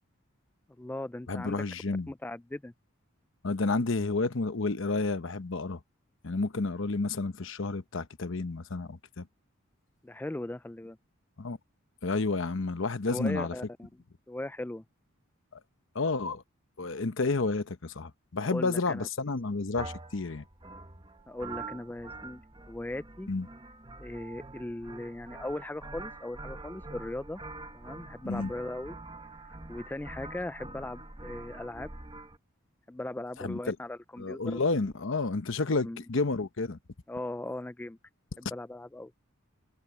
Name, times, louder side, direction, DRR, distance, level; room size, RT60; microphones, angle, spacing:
voice 1, 0.8-1.6 2.1-2.7 10.0-11.0 13.1-13.9 14.3-14.8 18.4-19.1 21.3-22.4 22.7-23.3 24.0-27.4 27.7-29.0 29.4-31.9 32.9-34.6 35.8-36.0 37.1-38.0 38.4-39.1, left 1 dB, 10° left, 0.3 m, -38 dB
voice 2, 1.3-2.1 3.4-5.8 6.2-9.3 11.4-11.6 12.0-13.5 15.5-15.6 15.9-16.4 16.8-20.4 23.3-23.5 28.2-28.5 33.4-33.8 34.2-36.8, left 3 dB, 65° left, 0.9 m, -30 dB
sound 1, 19.8-32.4, right 3 dB, 25° right, 1.4 m, -45 dB
head